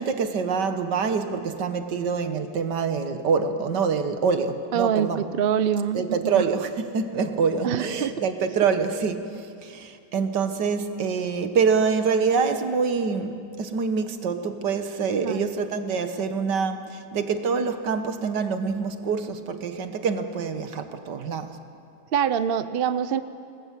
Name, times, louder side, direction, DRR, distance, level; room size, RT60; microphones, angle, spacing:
voice 1, 0.0-5.3 5.9-21.6, right 5 dB, 80° right, 8 dB, 1.9 m, -26 dB
voice 2, 4.7-6.4 7.6-8.1 15.2-15.5 22.1-23.2, right 8 dB, 50° right, 13 dB, 0.7 m, -25 dB
28.0 x 20.0 x 7.5 m, 2.4 s
omnidirectional pair, 1.8 m